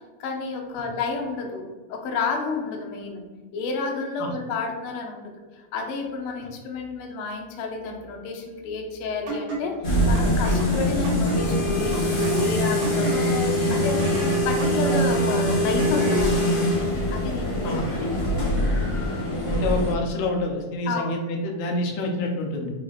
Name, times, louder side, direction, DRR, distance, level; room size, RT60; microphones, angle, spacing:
voice 1, 0.2-3.2 3.5-9.8 10.0-14.0 14.4-16.5 17.1-18.0 20.9-21.1, left 4 dB, 75° left, 2 dB, 1.3 m, -31 dB
sound 1, 9.3-16.4, right 1 dB, 85° right, 2.4 m, -33 dB
sound 2, 9.8-19.9, left 1 dB, 45° left, 0.8 m, -23 dB
voice 2, 19.5-22.7, left 2 dB, 90° left, 1 dB, 2.3 m, -27 dB
5.5 x 2.4 x 3.9 m, 1.3 s
omnidirectional pair, 3.3 m